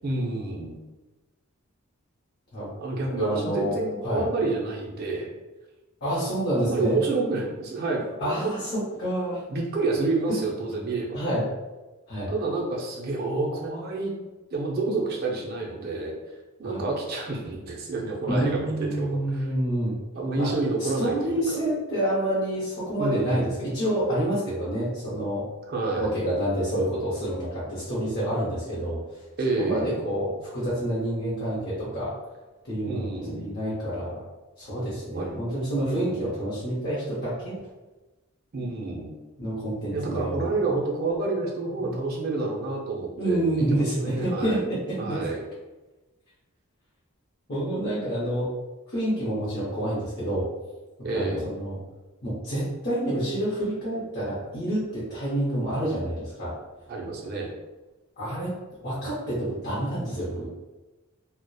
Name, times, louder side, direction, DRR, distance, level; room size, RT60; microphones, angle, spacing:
voice 1, 0.0-0.8 2.8-5.3 6.5-8.5 9.5-11.2 12.3-14.2 14.5-16.1 16.6-19.5 20.1-21.6 23.0-23.5 25.7-26.2 29.4-30.0 32.9-33.5 35.1-35.3 35.7-36.4 38.5-39.1 39.9-44.6 45.0-45.4 51.0-51.5 56.9-57.5, right 3 dB, 45° right, -1 dB, 0.4 m, -29 dB
voice 2, 3.2-3.8 4.0-4.2 6.0-7.0 8.2-9.4 10.3-10.4 11.1-11.4 12.1-12.3 16.6-16.8 18.3-20.0 20.3-20.5 20.8-25.4 26.0-29.0 29.6-32.1 32.6-34.2 34.6-37.6 39.4-40.5 41.8-42.0 43.2-45.2 47.5-48.5 48.9-50.5 51.1-51.8 52.2-56.5 58.2-58.5 58.8-60.5, right 1 dB, 50° left, -9 dB, 0.7 m, -28 dB
2.7 x 2.0 x 2.2 m, 1.1 s
head